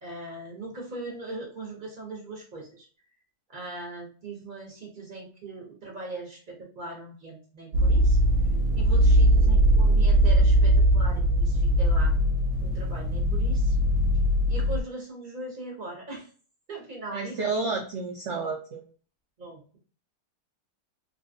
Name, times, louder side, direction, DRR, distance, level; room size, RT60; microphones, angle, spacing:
voice 1, 0.0-2.9 3.5-8.2 8.8-12.1 12.6-13.8 14.5-16.3 16.7-17.4 19.4-19.8, right 2 dB, 40° right, -3 dB, 0.8 m, -40 dB
sound 1, 7.7-14.8, equal, 70° right, 1.1 m, -21 dB
voice 2, 17.1-18.8, right 4 dB, 90° right, 1 dB, 0.6 m, -30 dB
3.3 x 2.3 x 2.6 m, 0.41 s
omnidirectional pair, 1.8 m